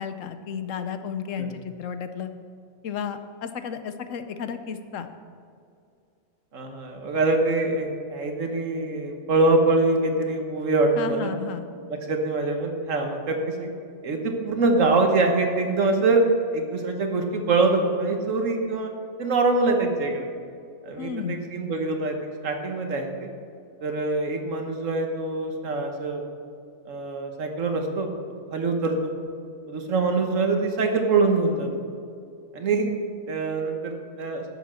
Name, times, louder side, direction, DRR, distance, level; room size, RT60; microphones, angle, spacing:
voice 1, 0.0-2.3 2.8-5.1 11.0-11.7 21.0-21.4, left 7 dB, 70° left, 9 dB, 1.0 m, -33 dB
voice 2, 6.5-11.3 11.9-13.7 14.0-16.2 16.5-18.9 19.2-20.3 20.8-23.3 23.8-26.2 26.8-28.1 28.5-29.1 29.7-31.7 32.5-32.9 33.3-34.4, right 3 dB, 70° right, 4 dB, 1.5 m, -24 dB
11.0 x 7.1 x 6.3 m, 2.4 s
omnidirectional pair, 1.4 m